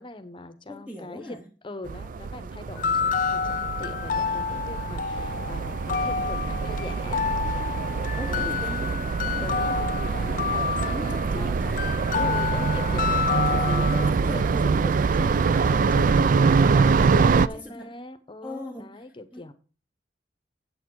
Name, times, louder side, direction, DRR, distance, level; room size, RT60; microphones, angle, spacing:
voice 1, 0.0-7.2 8.3-8.6 9.4-16.5 16.8-19.5, left 2 dB, 30° left, 0.9 m, -41 dB
voice 2, 0.7-1.5 8.1-9.6 10.0-10.6 10.9-11.9 13.3-14.9 15.9-16.4 17.5-17.9 18.4-19.0 19.3-19.5, left 1 dB, 5° right, 0.8 m, -39 dB
sound 1, 1.9-17.5, right 5 dB, 50° right, 0.3 m, -24 dB
sound 2, 2.8-14.1, left 6 dB, 50° left, 0.4 m, -29 dB
8.5 x 7.9 x 4.6 m
head